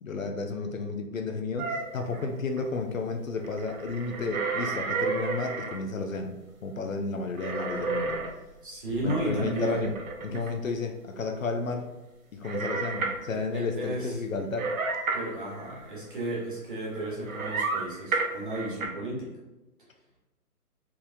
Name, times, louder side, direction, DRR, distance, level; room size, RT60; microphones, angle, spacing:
voice 1, 0.0-6.4 6.6-8.2 9.0-9.9 10.2-11.9 12.3-14.7, left 3 dB, 60° left, 4 dB, 0.5 m, -32 dB
sound 1, 1.6-2.6 3.4-5.8 7.4-8.5 8.9-10.5 12.4-13.2 14.6-16.4 16.9-18.9, right 4 dB, 60° right, 0.7 m, -32 dB
voice 2, 8.6-9.9 10.3-10.4 13.5-14.2 15.1-19.3, right 1 dB, 35° right, -5 dB, 1.1 m, -33 dB
3.6 x 3.0 x 2.6 m, 1.0 s
hypercardioid pair, 175°, 46 cm